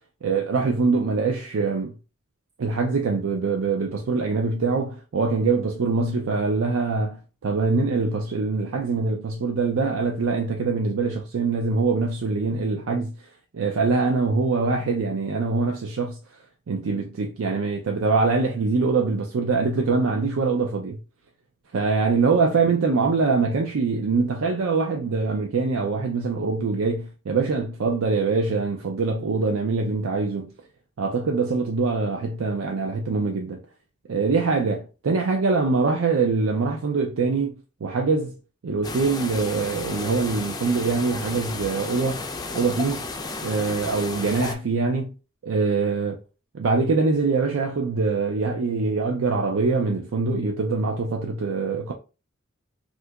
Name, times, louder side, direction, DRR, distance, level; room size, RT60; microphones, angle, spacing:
voice 1, 0.2-1.9 2.6-13.1 13.5-16.2 16.7-21.0 21.7-30.5 31.0-33.6 34.1-38.3 38.6-42.2 42.5-43.1 43.4-45.1 45.4-46.2 46.5-51.9, right 4 dB, 75° right, 0.4 m, -24 dB
sound 1, 38.8-44.6, left 3 dB, 20° left, 0.4 m, -33 dB
2.7 x 2.5 x 3.3 m
head